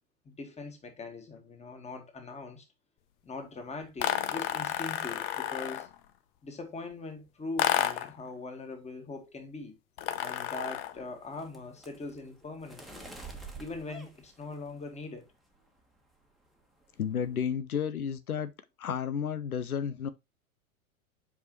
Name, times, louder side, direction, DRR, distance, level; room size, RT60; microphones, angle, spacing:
voice 1, 0.3-2.7 3.2-5.9 6.4-9.7 10.2-13.1 13.6-15.3, left 3 dB, 15° left, 1.8 m, -41 dB
sound 1, 4.0-6.0 7.6-8.2 10.0-11.0, left 12 dB, 45° left, 0.8 m, -31 dB
sound 2, 10.8-15.1 15.5-16.0 16.2-16.5 16.8-17.4, right 3 dB, ahead, 1.4 m, -49 dB
voice 2, 17.0-18.5 18.8-20.1, left 7 dB, 90° left, 0.7 m, -32 dB
8.0 x 4.9 x 3.1 m
hypercardioid pair, 100°, 42 cm